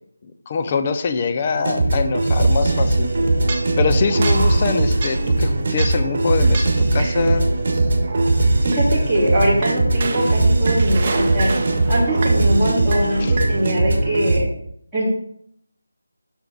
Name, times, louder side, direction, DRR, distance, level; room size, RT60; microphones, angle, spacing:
voice 1, 0.5-3.1 3.8-7.5 13.2-13.3, left 5 dB, 25° left, 8 dB, 0.5 m, -23 dB
sound 1, 1.5-14.4, right 2 dB, 45° right, 1.4 m, -19 dB
sound 2, 3.5-3.8 4.1-6.1 6.4-7.3 7.7-8.9 9.6-12.6 12.9-13.6, right 3 dB, 30° right, 0.8 m, -30 dB
voice 2, 8.6-11.5 11.9-14.5 14.9-15.1, right 1 dB, 5° right, -14 dB, 2.2 m, -22 dB
6.7 x 6.3 x 4.0 m, 0.69 s
figure-of-eight pair, 170°, 0 cm